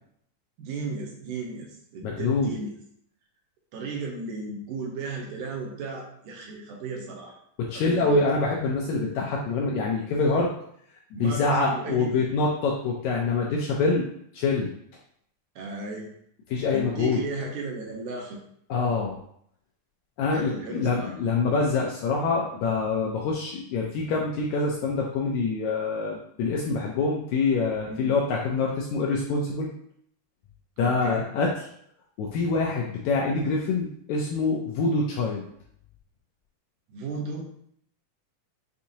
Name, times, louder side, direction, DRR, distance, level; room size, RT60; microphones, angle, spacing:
voice 1, 0.6-2.7 3.7-7.4 7.7-8.2 11.2-12.2 15.6-16.1 16.7-18.4 20.3-21.1 27.9-28.1 30.8-31.3 36.9-37.5, right 3 dB, 75° right, -1 dB, 2.3 m, -35 dB
voice 2, 2.0-2.5 7.6-10.5 11.2-14.1 14.3-14.7 16.5-17.2 18.7-19.2 20.2-29.7 30.8-31.5 32.2-35.4, left 3 dB, 80° left, -2 dB, 1.7 m, -25 dB
7.1 x 2.7 x 2.8 m, 0.68 s
omnidirectional pair, 3.8 m